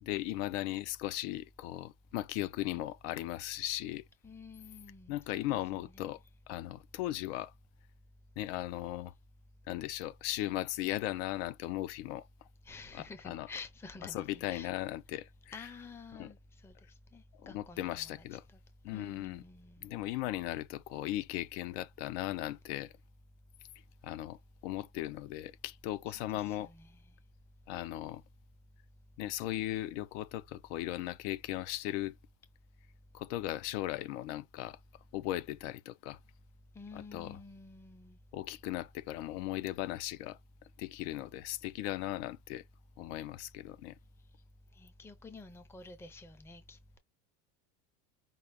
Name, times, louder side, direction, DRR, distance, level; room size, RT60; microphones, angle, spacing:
voice 1, 0.0-4.0 5.1-7.5 8.4-9.1 9.7-12.3 12.9-13.5 14.1-15.3 15.6-15.7 16.1-16.3 17.4-18.4 18.8-19.4 19.8-22.9 24.0-26.7 27.7-28.2 29.2-32.2 33.1-34.8 35.1-36.2 36.9-37.4 38.3-40.4 40.8-42.6 43.0-44.0, left 15 dB, 60° left, 0.6 m, -37 dB
voice 2, 4.2-6.2 12.7-14.7 15.5-16.4 16.6-16.7 17.1-18.3 18.9-19.9 26.1-27.0 36.7-38.2 44.8-47.0, left 3 dB, 5° left, 0.5 m, -50 dB
5.5 x 2.4 x 3.4 m
supercardioid pair, 155°, 39 cm